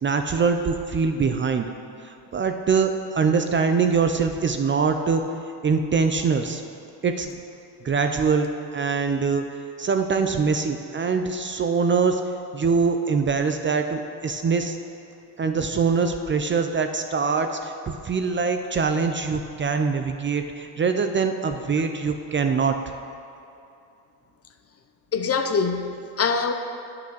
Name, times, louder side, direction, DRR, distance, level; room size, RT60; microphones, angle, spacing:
voice 1, 0.0-1.6 2.0-5.2 5.6-6.6 7.0-7.3 7.8-8.5 8.7-9.4 9.8-12.2 12.5-14.8 15.4-22.8, right 5 dB, 25° right, 6 dB, 0.5 m, -23 dB
voice 2, 25.1-26.5, left 5 dB, 35° left, 7 dB, 0.7 m, -24 dB
9.0 x 5.9 x 6.3 m, 2.6 s
supercardioid pair, 85°, 45 cm